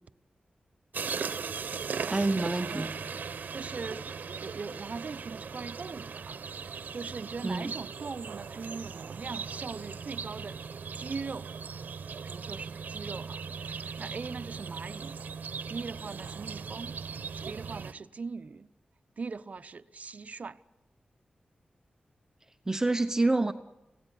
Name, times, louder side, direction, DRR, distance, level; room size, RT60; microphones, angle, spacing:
sound 1, 0.9-17.9, right 6 dB, 90° right, 0.9 m, -38 dB
voice 1, 2.1-3.0 7.4-7.7 22.7-23.5, right 2 dB, 20° right, 0.9 m, -27 dB
voice 2, 2.6-3.0 3.3-4.0 4.4-10.6 10.9-11.5 12.3-15.2 15.7-16.9 17.4-18.7 19.2-20.6, right 4 dB, 55° right, 0.8 m, -40 dB
26.0 x 17.0 x 10.0 m
wide cardioid pair, 105°, 3 cm